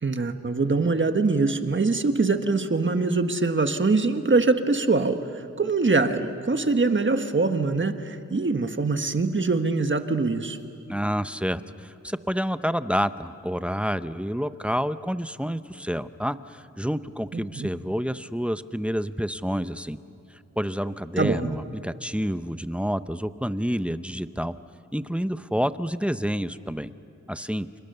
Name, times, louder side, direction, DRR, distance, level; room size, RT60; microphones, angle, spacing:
voice 1, 0.0-10.6 17.3-17.7 21.2-21.6, right 3 dB, 40° right, 7 dB, 1.4 m, -23 dB
voice 2, 10.9-20.0 20.6-24.6 24.9-26.9 27.3-27.7, equal, 5° right, 12 dB, 0.8 m, -28 dB
30.0 x 28.0 x 6.9 m, 2.6 s
wide cardioid pair, 70°, 29 cm